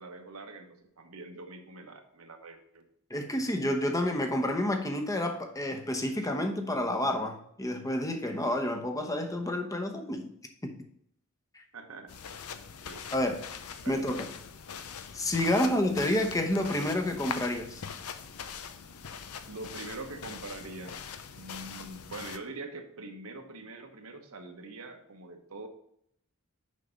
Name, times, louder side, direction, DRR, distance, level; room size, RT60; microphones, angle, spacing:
voice 1, 0.0-2.9 11.7-12.1 12.8-13.2 13.8-14.0 15.6-15.7 19.5-21.0 21.3-25.7, right 3 dB, 70° right, 5 dB, 1.1 m, -44 dB
voice 2, 3.1-10.3 10.6-10.7 11.5-11.6 13.1-13.4 13.9-14.3 15.1-17.8, left 1 dB, 15° left, 4 dB, 0.9 m, -29 dB
sound 1, 12.1-22.4, left 7 dB, 80° left, 0.6 m, -42 dB
6.6 x 5.6 x 5.2 m, 0.71 s
head